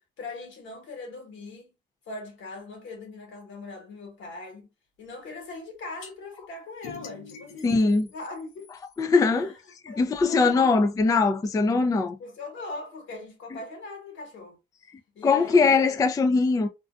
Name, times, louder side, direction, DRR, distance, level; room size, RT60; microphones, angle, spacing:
voice 1, 0.0-1.7 2.1-4.7 5.0-8.7 9.3-9.4 9.9-10.7 12.2-14.6 15.1-15.9, left 3 dB, 70° left, 1.2 m, -41 dB
sound 1, 6.0-6.1 6.8-9.0, left 5 dB, 90° left, 0.8 m, -45 dB
voice 2, 7.6-8.1 9.0-9.5 9.8-12.2 15.2-16.7, left 4 dB, 15° left, 0.3 m, -21 dB
2.5 x 2.2 x 2.4 m
cardioid pair, 90°, 20 cm